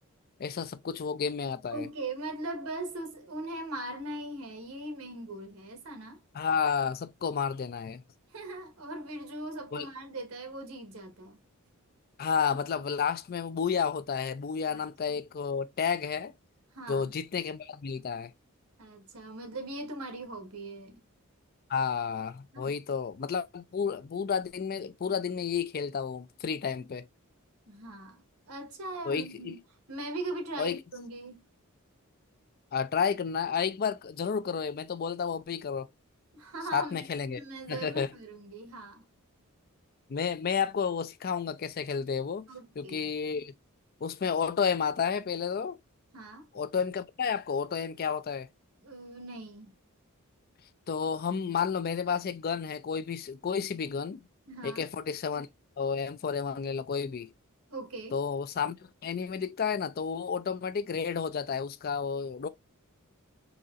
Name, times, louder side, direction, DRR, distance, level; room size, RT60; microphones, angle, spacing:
voice 1, 0.4-1.9 6.3-8.0 9.7-9.9 12.2-16.3 16.9-18.3 21.7-27.0 29.1-29.5 30.6-30.8 32.7-35.9 36.7-37.4 37.7-38.1 40.1-42.5 42.8-43.5 44.0-45.8 46.5-48.5 50.9-54.2 54.6-55.5 55.8-57.3 58.1-62.5, left 6 dB, 45° left, 0.4 m, -31 dB
voice 2, 1.7-6.2 8.3-11.4 14.7-14.8 16.7-17.1 18.8-21.0 22.5-22.7 27.7-29.6 29.9-31.4 36.3-37.1 37.3-39.0 42.5-43.1 46.1-46.5 48.8-49.7 54.5-54.9 57.7-58.2, right 2 dB, 80° right, 1.2 m, -40 dB
4.1 x 2.9 x 2.4 m
head